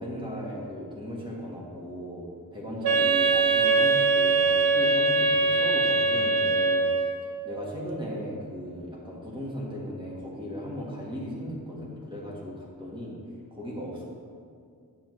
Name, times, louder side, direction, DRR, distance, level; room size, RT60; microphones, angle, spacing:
voice 1, 0.0-6.9 7.4-13.2 13.5-14.0, equal, 15° right, -5 dB, 1.5 m, -37 dB
Wind instrument woodwind instrument, 2.8-7.3, right 3 dB, 80° right, 0.5 m, -22 dB
9.5 x 6.1 x 3.2 m, 2.3 s
wide cardioid pair, 160°, 36 cm